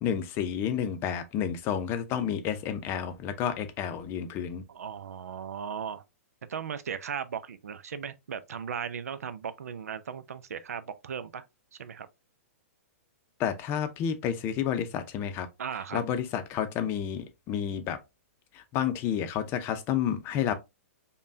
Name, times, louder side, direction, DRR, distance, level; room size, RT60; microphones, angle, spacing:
voice 1, 0.0-4.6 13.4-15.5 15.9-18.0 18.5-20.5, left 9 dB, 30° left, 0.6 m, -30 dB
voice 2, 4.7-6.0 6.5-11.4 11.7-12.1 15.6-16.0, right 7 dB, 80° right, 0.5 m, -37 dB
5.3 x 2.2 x 2.6 m
hypercardioid pair, 135°, 8 cm